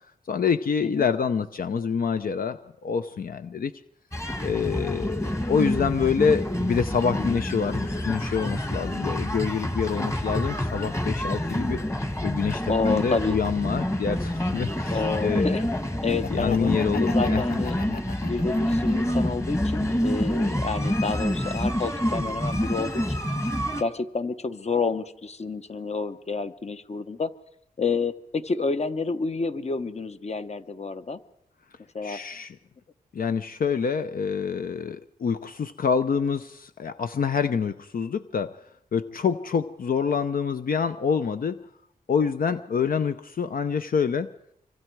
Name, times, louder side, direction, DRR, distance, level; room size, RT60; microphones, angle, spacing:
voice 1, 0.3-3.7 4.4-11.8 12.2-15.6 16.3-17.4 32.0-32.6 33.1-38.6 38.9-41.6 42.1-44.3, left 6 dB, 70° left, 10 dB, 0.7 m, -26 dB
sound 1, 4.1-23.8, left 1 dB, 20° left, 1.9 m, -27 dB
voice 2, 12.7-13.4 14.9-15.6 16.0-17.8 18.2-23.2 23.8-27.3 27.8-31.2 31.9-32.2, left 4 dB, 45° left, 11 dB, 1.0 m, -29 dB
Laughter, 15.9-19.1 19.6-20.7, left 6 dB, 85° left, 1.1 m, -39 dB
25.5 x 25.0 x 4.7 m, 0.77 s
wide cardioid pair, 90°, 15 cm